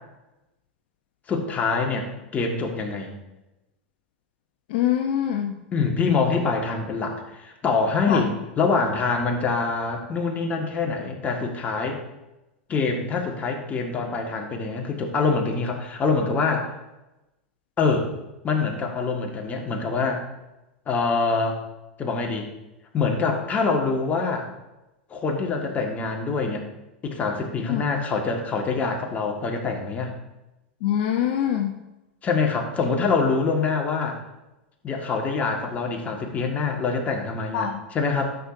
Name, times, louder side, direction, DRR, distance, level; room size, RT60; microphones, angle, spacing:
voice 1, 1.3-2.1 2.3-3.1 5.7-12.0 12.7-16.7 17.8-18.1 18.4-20.2 20.9-21.6 22.0-22.5 22.9-24.5 25.1-26.7 27.0-30.1 32.2-34.2 34.8-38.4, left 4 dB, 30° left, 2 dB, 1.7 m, -25 dB
voice 2, 4.7-5.5 8.1-8.2 27.7-27.8 30.8-31.7 37.5-37.8, left 10 dB, 60° left, 3 dB, 0.7 m, -24 dB
12.5 x 6.7 x 2.7 m, 0.97 s
hypercardioid pair, 95°, 6 cm